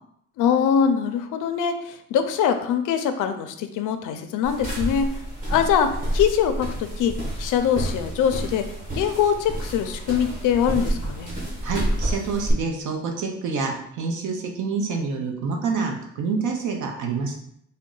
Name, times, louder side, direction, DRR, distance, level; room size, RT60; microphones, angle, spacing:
voice 1, 0.4-5.1 5.5-7.1 7.4-8.6 8.9-11.3, left 8 dB, 90° left, 8 dB, 0.5 m, -23 dB
sound 1, 4.4-12.5, right 1 dB, 25° right, 1.0 m, -29 dB
voice 2, 11.3-17.4, right 4 dB, 75° right, 2 dB, 0.7 m, -27 dB
3.6 x 2.2 x 3.8 m, 0.72 s
cardioid pair, 175°, 30 cm